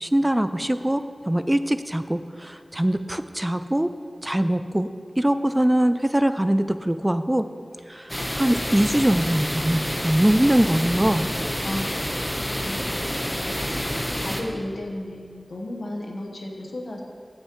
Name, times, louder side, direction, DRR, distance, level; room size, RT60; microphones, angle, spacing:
voice 1, 0.0-3.9 4.2-4.9 5.2-7.5 7.9-11.3, right 1 dB, 15° right, 11 dB, 0.3 m, -22 dB
sound 1, 8.1-14.4, equal, 10° left, 1.0 m, -28 dB
voice 2, 11.6-12.9 13.5-13.9 14.2-17.0, left 1 dB, 75° left, 0 dB, 1.2 m, -34 dB
15.0 x 6.4 x 3.1 m, 2.2 s
wide cardioid pair, 55°, 0 cm